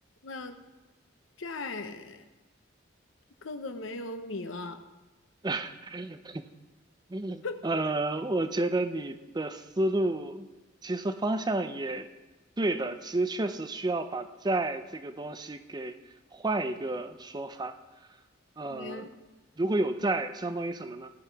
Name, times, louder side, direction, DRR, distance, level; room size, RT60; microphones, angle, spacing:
voice 1, 0.2-0.6 1.4-2.2 3.4-4.8 7.4-7.6 18.7-19.1, left 3 dB, 80° left, 9 dB, 0.8 m, -38 dB
voice 2, 5.4-6.4 7.1-10.5 10.8-12.1 12.6-16.0 16.3-17.8 18.6-19.1 19.6-21.1, right 2 dB, 20° right, 9 dB, 0.5 m, -31 dB
16.5 x 5.9 x 4.6 m, 1.1 s
head